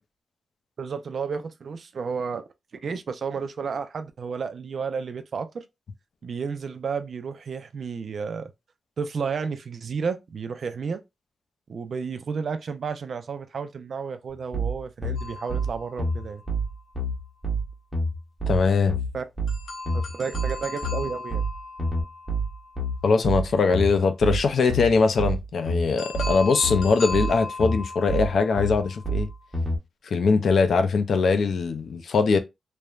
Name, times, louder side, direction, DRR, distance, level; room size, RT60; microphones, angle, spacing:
voice 1, 0.8-2.4 2.7-5.6 6.2-8.5 9.0-11.0 11.7-16.4 19.1-19.2 19.9-21.4, right 5 dB, 55° right, 0.4 m, -32 dB
sound 1, 14.5-29.8, right 1 dB, ahead, 0.9 m, -28 dB
sound 2, 15.2-16.9 19.5-23.4 26.0-29.4, left 3 dB, 80° left, 0.8 m, -38 dB
voice 2, 18.5-19.0 23.0-29.3 30.1-32.4, left 4 dB, 60° left, 0.4 m, -21 dB
3.1 x 2.1 x 2.3 m
wide cardioid pair, 145°, 0 cm